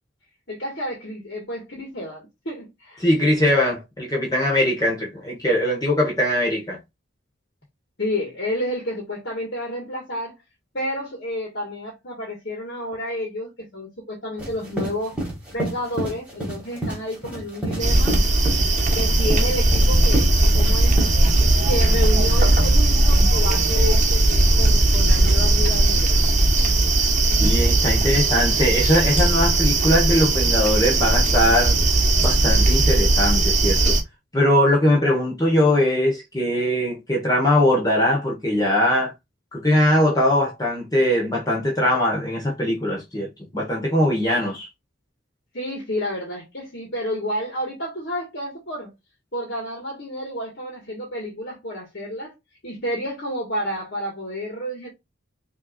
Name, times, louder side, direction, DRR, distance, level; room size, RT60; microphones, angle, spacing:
voice 1, 0.5-3.1 8.0-10.3 10.7-15.2 15.5-18.2 18.9-21.0 21.6-26.2 45.5-48.9 49.3-52.3 52.6-54.9, equal, 55° left, 1.5 m, -30 dB
voice 2, 3.0-6.8 21.4-21.5 27.4-31.8 32.2-34.0 34.3-39.1 39.5-44.7, left 1 dB, 20° left, 1.1 m, -21 dB
sound 1, 14.4-21.1, right 1 dB, 5° right, 2.0 m, -29 dB
sound 2, 17.8-34.0, right 2 dB, 35° right, 1.0 m, -18 dB
5.5 x 2.9 x 2.3 m
head